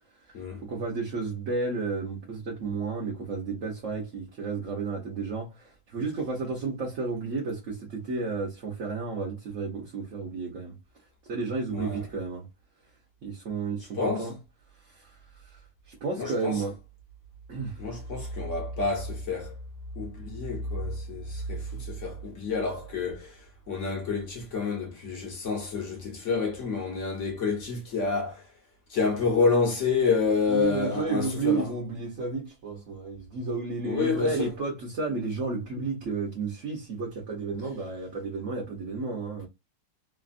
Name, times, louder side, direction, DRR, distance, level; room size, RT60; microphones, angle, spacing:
voice 1, 0.2-10.8 11.3-12.5 13.2-14.4 14.8-15.6 15.9-16.8 17.5-17.8 30.5-39.5, right 4 dB, 50° right, 1.1 m, -32 dB
voice 2, 13.9-14.3 16.2-16.6 17.8-19.6 20.0-28.5 28.9-31.7 33.8-34.5, left 4 dB, 45° left, 1.2 m, -28 dB
3.3 x 2.4 x 2.4 m
omnidirectional pair, 2.0 m